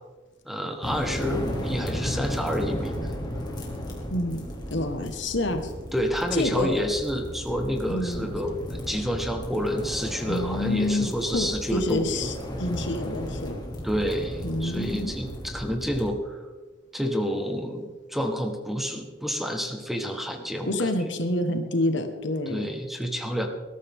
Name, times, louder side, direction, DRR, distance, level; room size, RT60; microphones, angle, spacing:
voice 1, 0.4-3.1 5.9-12.2 13.8-16.4 16.9-20.9 22.5-23.5, equal, ahead, 4 dB, 1.4 m, -29 dB
sound 1, 0.8-16.1, equal, 20° left, 2.8 m, -34 dB
voice 2, 4.1-5.7 6.3-6.9 7.9-8.3 10.3-13.6 14.4-15.1 20.7-22.7, left 1 dB, 65° left, 7 dB, 1.5 m, -28 dB
20.5 x 13.0 x 3.7 m, 1.3 s
head